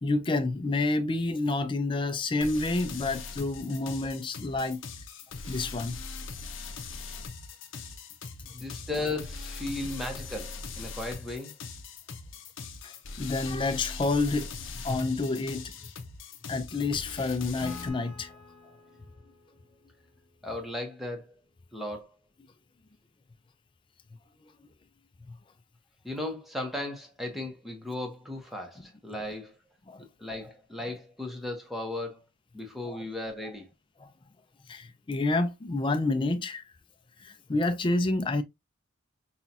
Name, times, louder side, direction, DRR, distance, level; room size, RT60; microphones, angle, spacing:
voice 1, 0.0-4.8 5.5-6.0 12.8-15.7 16.5-18.3 29.9-30.0 32.8-33.0 34.0-34.1 34.7-36.6 37.2-38.4, left 2 dB, 25° left, 0.4 m, -29 dB
sound 1, 2.4-17.9, left 4 dB, 60° left, 0.7 m, -41 dB
voice 2, 8.5-11.5 18.6-18.8 20.4-21.3 21.7-22.1 26.0-29.5 30.2-32.2 32.5-33.7, left 2 dB, ahead, 0.9 m, -36 dB
Acoustic guitar / Strum, 17.6-21.0, left 2 dB, 65° right, 1.1 m, -48 dB
5.6 x 2.3 x 2.7 m
head